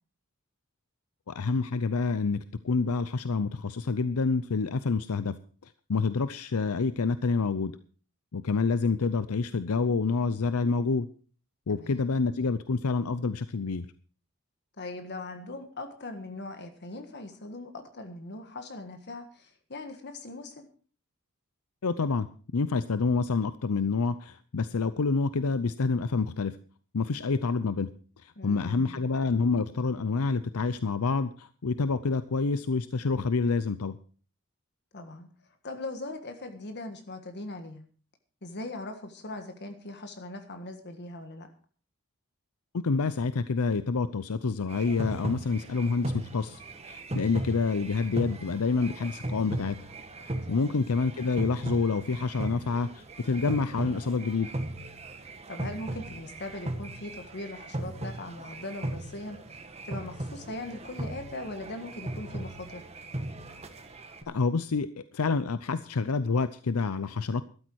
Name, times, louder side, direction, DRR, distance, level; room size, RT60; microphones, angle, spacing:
voice 1, 1.3-5.3 5.6-7.7 8.3-11.1 11.7-13.9 21.8-22.3 22.5-26.6 26.9-27.9 28.2-34.0 42.7-49.7 50.2-54.5 64.3-64.9 65.1-67.4, left 4 dB, 80° left, 13 dB, 0.6 m, -28 dB
voice 2, 11.7-12.0 14.8-20.7 28.3-29.1 34.9-35.3 35.6-37.8 38.4-41.5 50.5-50.8 55.5-59.4 59.8-62.8, left 2 dB, 50° left, 7 dB, 1.6 m, -40 dB
sound 1, 44.7-64.2, right 1 dB, 30° right, 1.5 m, -37 dB
13.5 x 12.5 x 4.7 m, 0.40 s
head